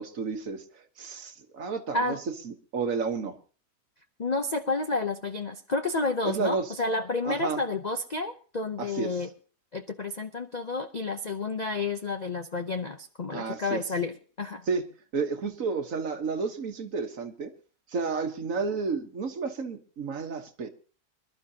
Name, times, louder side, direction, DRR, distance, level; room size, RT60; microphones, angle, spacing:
voice 1, 0.0-2.2 2.4-3.4 6.2-6.7 7.2-7.6 8.8-9.1 13.3-13.8 14.7-14.8 15.1-17.5 17.9-20.7, right 4 dB, 55° right, 6 dB, 1.6 m, -31 dB
voice 2, 4.2-9.3 9.7-14.7, left 3 dB, 45° left, 6 dB, 0.5 m, -30 dB
26.0 x 12.0 x 2.8 m, 0.38 s
omnidirectional pair, 1.8 m